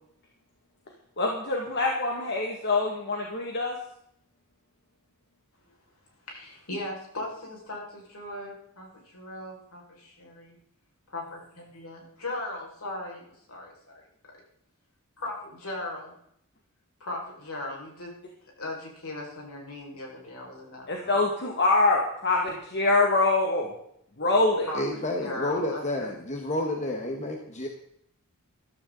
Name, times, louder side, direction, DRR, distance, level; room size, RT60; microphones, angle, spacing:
voice 1, 1.2-3.8 20.9-23.7 24.2-24.7, left 2 dB, 50° left, 0 dB, 2.0 m, -24 dB
voice 2, 6.3-10.6 11.1-14.0 15.2-16.1 17.0-18.1 18.6-21.1 24.7-26.1, left 2 dB, 70° left, -1 dB, 5.6 m, -38 dB
voice 3, 24.7-27.7, left 1 dB, 30° left, 2 dB, 1.5 m, -30 dB
14.5 x 13.0 x 4.0 m, 0.70 s
head